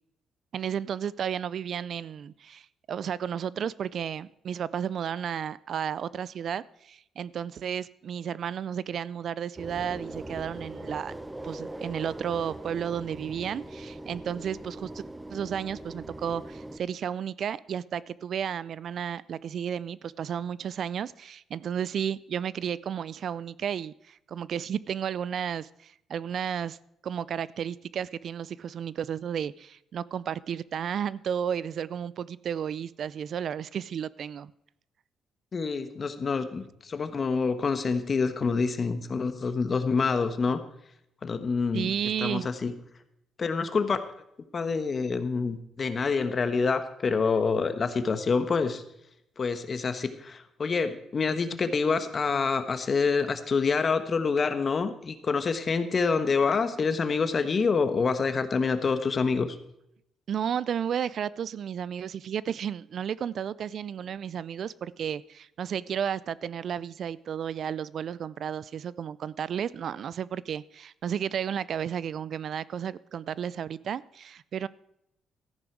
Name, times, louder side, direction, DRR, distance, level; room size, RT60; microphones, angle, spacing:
voice 1, 0.5-11.1 11.4-15.0 15.3-26.8 27.0-34.5 41.7-42.5 60.3-74.7, right 8 dB, 60° right, 0.4 m, -33 dB
sound 1, 9.6-16.8, right 1 dB, 15° right, 0.8 m, -41 dB
voice 2, 35.5-40.6 41.2-41.9 42.2-42.7 43.4-44.1 44.5-48.8 49.4-59.6, left 5 dB, 40° left, 1.2 m, -27 dB
14.0 x 9.9 x 4.6 m
cardioid pair, 90°, 0 cm